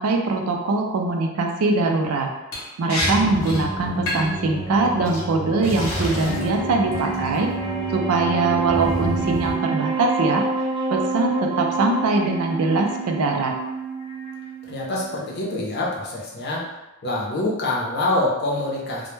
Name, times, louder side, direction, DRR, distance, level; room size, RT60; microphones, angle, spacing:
voice 1, 0.0-2.3 2.8-7.5 7.9-10.4 10.9-13.5, right 3 dB, 90° right, 2 dB, 0.4 m, -22 dB
Liquid, 2.5-2.6 2.9-3.1 3.4-3.6 4.1-4.4 5.0-5.2 5.6-6.5 6.9-7.3, left 1 dB, 80° left, 0.8 m, -29 dB
sound 1, 3.0-9.5, equal, ahead, 0.8 m, -30 dB
Wind instrument woodwind instrument, 6.0-15.5, right 4 dB, 25° right, 0.5 m, -28 dB
voice 2, 14.7-16.6 17.0-19.1, left 2 dB, 50° left, -4 dB, 0.6 m, -25 dB
2.1 x 2.1 x 3.1 m, 1.0 s
head